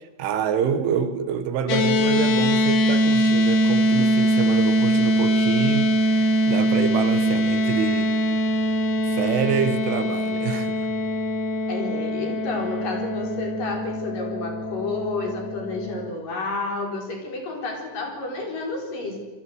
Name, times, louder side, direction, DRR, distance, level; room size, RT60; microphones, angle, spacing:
voice 1, 0.2-8.1 9.0-10.9, right 7 dB, 85° right, 9 dB, 4.2 m, -27 dB
sound 1, 1.7-16.1, equal, 70° left, 1.5 m, -22 dB
voice 2, 11.7-19.2, left 3 dB, 45° left, 3 dB, 5.9 m, -30 dB
27.5 x 20.5 x 8.1 m, 1.2 s
omnidirectional pair, 5.4 m